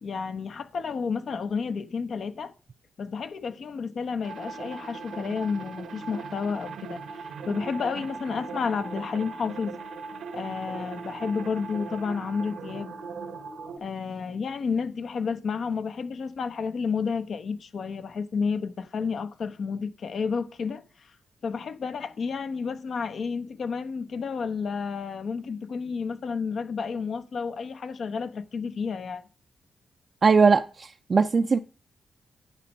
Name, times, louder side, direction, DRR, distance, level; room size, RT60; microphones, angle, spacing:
voice 1, 0.0-2.5 3.0-7.0 7.5-9.8 10.3-13.0 13.8-20.8 21.4-29.2, left 5 dB, 65° left, 0.8 m, -31 dB
sound 1, 4.2-13.8, right 4 dB, 90° right, 1.3 m, -39 dB
voice 2, 30.2-31.6, right 4 dB, 50° right, 0.5 m, -20 dB
9.9 x 6.2 x 5.4 m
cardioid pair, 65°, 0 cm